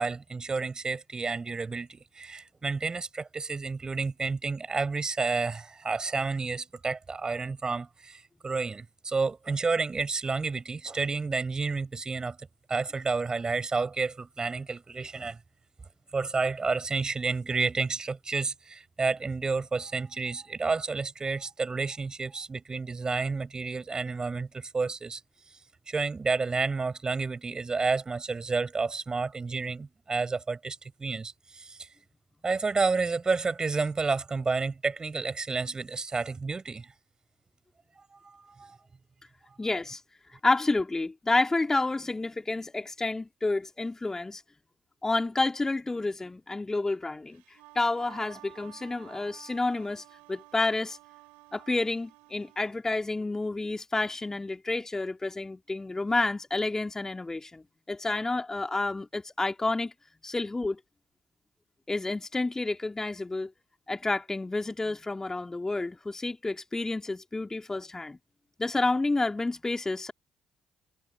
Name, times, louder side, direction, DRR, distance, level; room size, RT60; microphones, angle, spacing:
voice 1, 0.0-15.4 16.1-25.2 25.9-31.9 32.4-36.9 38.2-38.8, right 4 dB, 30° right, 6.5 m, -30 dB
voice 2, 39.6-40.0 40.4-44.4 45.0-47.4 47.7-51.0 51.5-59.9 60.2-60.8 61.9-63.5 63.9-68.2 68.6-70.1, left 2 dB, 20° left, 2.5 m, -29 dB
Wind instrument woodwind instrument, 47.3-52.8, right 25 dB, 70° right, 6.9 m, -53 dB
figure-of-eight pair, 45°, 2 cm